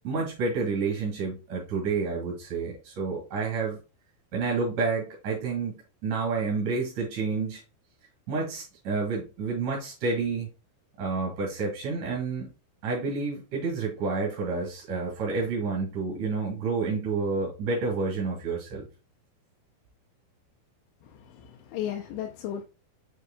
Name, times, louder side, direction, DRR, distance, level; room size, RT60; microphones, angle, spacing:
voice 1, 0.0-3.8 4.3-5.7 6.0-7.6 8.3-10.5 11.0-12.5 12.8-18.9, right 4 dB, 50° right, 3.2 m, -29 dB
voice 2, 21.0-22.6, left 10 dB, 80° left, 2.9 m, -35 dB
6.9 x 6.5 x 2.2 m
omnidirectional pair, 5.2 m